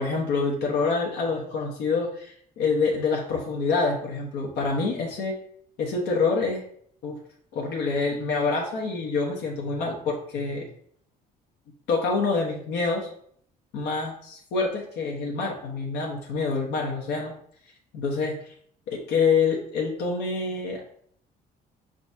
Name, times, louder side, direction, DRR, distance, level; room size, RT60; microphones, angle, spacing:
voice 1, 0.0-5.3 5.8-6.6 7.0-7.2 7.5-10.7 11.9-13.1 13.7-17.3 17.9-18.5 18.9-20.8, left 4 dB, 80° left, -1 dB, 1.0 m, -26 dB
4.7 x 3.9 x 2.7 m, 0.63 s
cardioid pair, 110°, 17 cm